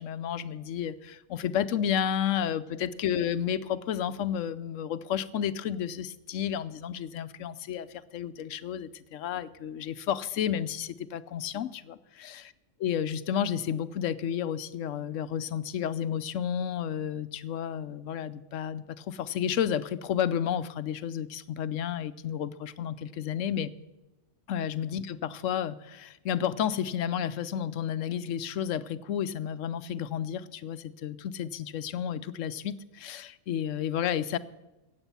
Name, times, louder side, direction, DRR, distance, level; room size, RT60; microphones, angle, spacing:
voice 1, 0.0-7.9 8.1-12.4 12.8-23.7 24.5-34.4, left 9 dB, 85° left, 14 dB, 1.0 m, -31 dB
15.0 x 8.8 x 6.9 m, 1.1 s
omnidirectional pair, 1.3 m